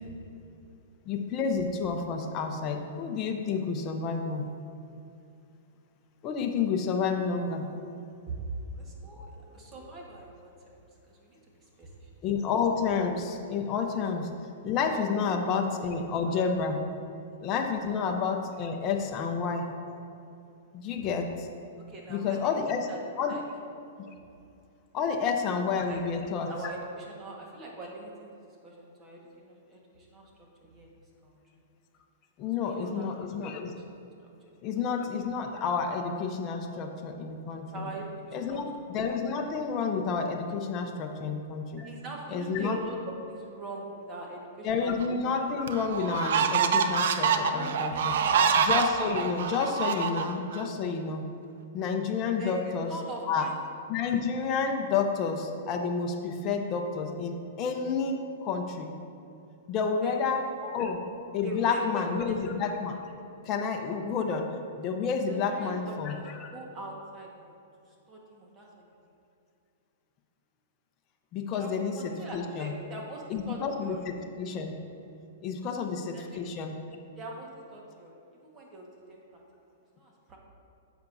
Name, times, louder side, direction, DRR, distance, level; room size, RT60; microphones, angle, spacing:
voice 1, 1.1-4.5 6.2-7.6 12.2-14.3 14.6-16.8 17.4-19.7 20.7-21.5 22.1-22.8 23.2-23.3 24.9-26.5 32.4-33.7 34.6-37.9 38.3-41.8 42.3-42.8 44.6-48.1 48.6-51.3 51.7-52.9 53.3-53.5 53.9-58.9 59.7-60.4 60.7-61.0 61.3-63.0 63.5-64.5 64.7-66.4 71.3-72.7 73.3-74.7 75.4-76.8, left 5 dB, 30° left, 3 dB, 0.7 m, -30 dB
voice 2, 8.7-10.8 11.1-12.1 15.1-15.5 21.0-21.2 21.9-22.5 22.9-23.0 23.3-23.4 25.8-26.0 26.4-30.3 30.6-30.9 31.2-31.4 32.6-33.1 33.4-33.5 34.2-34.3 34.7-34.8 37.7-38.6 41.8-43.0 43.3-44.9 47.2-48.5 52.4-52.6 52.9-53.6 60.0-60.2 60.6-60.7 61.4-62.4 65.3-66.2 66.5-67.6 68.1-68.9 71.6-74.1 75.6-75.7 76.1-76.4 77.2-78.2 78.4-79.4 80.0-80.4, right 1 dB, 20° right, -2 dB, 1.4 m, -42 dB
sound 1, 45.0-45.1 45.7-50.6, right 6 dB, 70° right, 0.5 m, -26 dB
10.5 x 7.0 x 2.7 m, 2.6 s
hypercardioid pair, 150°, 0 cm